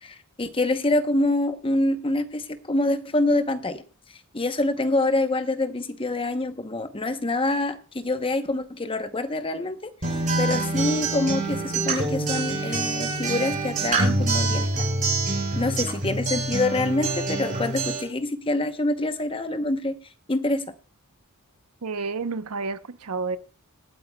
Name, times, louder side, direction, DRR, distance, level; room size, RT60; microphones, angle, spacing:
voice 1, 0.0-3.8 4.3-14.7 15.6-19.9 20.3-20.7, left 2 dB, 25° left, 10 dB, 0.8 m, -26 dB
Acoustic guitar, 10.0-18.0, right 2 dB, 40° right, 6.3 m, -26 dB
voice 2, 21.8-23.4, right 4 dB, 85° right, 12 dB, 0.8 m, -30 dB
26.5 x 8.9 x 2.2 m, 0.34 s
head